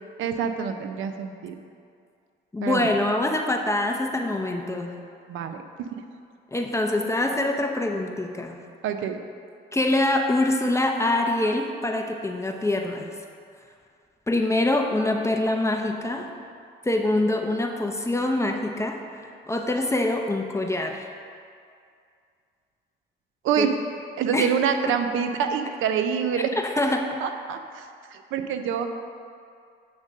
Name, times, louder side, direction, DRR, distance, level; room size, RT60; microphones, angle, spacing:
voice 1, 0.2-1.6 2.6-2.9 5.3-5.6 8.8-9.2 23.4-23.7 24.2-26.5 27.2-28.9, right 7 dB, 85° right, 7 dB, 0.6 m, -26 dB
voice 2, 2.5-5.0 6.5-8.6 9.7-13.1 14.3-16.3 16.8-21.1 23.6-23.7 24.3-24.5 24.9-25.0 26.6-27.1, left 1 dB, 15° left, 2 dB, 0.7 m, -25 dB
8.0 x 3.7 x 6.4 m, 2.3 s
cardioid pair, 90°, 20 cm